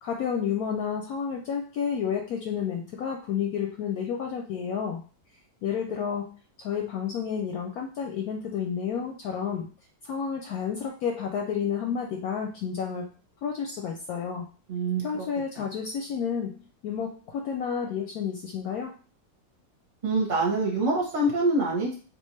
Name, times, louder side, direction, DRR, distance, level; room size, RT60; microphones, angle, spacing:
voice 1, 0.0-5.0 5.6-9.7 10.0-13.1 13.4-14.4 15.0-16.5 16.8-18.9, left 7 dB, 70° left, 1 dB, 0.9 m, -30 dB
voice 2, 14.7-15.0 15.6-15.7 20.0-21.9, right 2 dB, 30° right, -3 dB, 1.0 m, -25 dB
3.4 x 2.6 x 3.1 m, 0.39 s
omnidirectional pair, 1.8 m